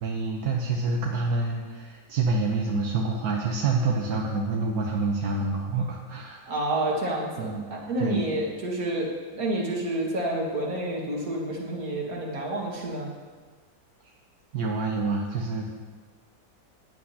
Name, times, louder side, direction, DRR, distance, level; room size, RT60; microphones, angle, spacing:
voice 1, 0.0-6.5 7.4-7.7 8.0-8.2 14.5-15.7, right 3 dB, 90° right, -1 dB, 1.4 m, -27 dB
voice 2, 6.5-9.1 9.3-13.1, right 1 dB, 75° right, -2 dB, 2.2 m, -29 dB
15.0 x 9.6 x 2.9 m, 1.4 s
omnidirectional pair, 1.6 m